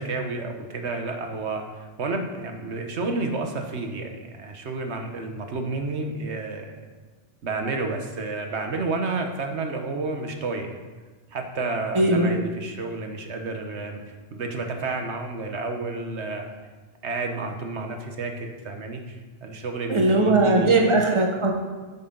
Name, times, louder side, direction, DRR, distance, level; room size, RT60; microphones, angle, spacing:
voice 1, 0.0-6.9 7.4-10.7 11.3-16.5 17.0-20.8, right 3 dB, 75° right, 4 dB, 1.4 m, -30 dB
voice 2, 11.9-12.3 19.9-21.5, right 2 dB, 25° right, 1 dB, 1.3 m, -19 dB
10.0 x 8.0 x 3.9 m, 1.3 s
omnidirectional pair, 1.2 m